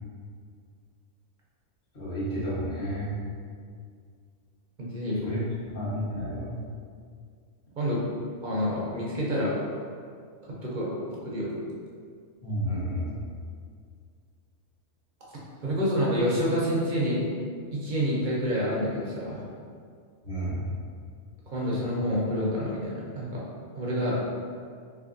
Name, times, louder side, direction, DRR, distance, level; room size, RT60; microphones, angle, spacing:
voice 1, 1.9-3.2 5.2-5.4 5.7-6.6 12.4-13.2 20.2-20.7, equal, 45° left, -11 dB, 1.4 m, -31 dB
voice 2, 4.8-5.4 7.8-8.0 8.4-9.5 10.6-10.9 11.2-11.5 15.6-17.2 17.7-19.4 21.5-23.4 23.7-24.2, equal, 50° right, -6 dB, 0.7 m, -28 dB
3.4 x 3.3 x 2.5 m, 2.1 s
omnidirectional pair, 1.3 m